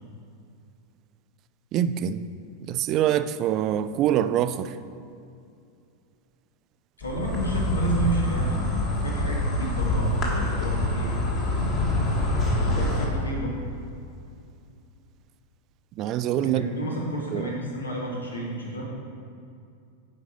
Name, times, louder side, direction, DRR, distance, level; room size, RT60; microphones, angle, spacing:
voice 1, 1.7-2.3 2.7-4.8 16.0-16.7 17.3-17.5, right 11 dB, 35° right, 12 dB, 0.3 m, -25 dB
voice 2, 7.0-11.2 12.4-13.6 16.4-18.8, right 1 dB, 75° left, -1 dB, 1.5 m, -31 dB
Insect, 7.0-13.0, left 1 dB, 35° left, 1.8 m, -25 dB
10.5 x 5.3 x 3.9 m, 2.5 s
figure-of-eight pair, 90°, 0 cm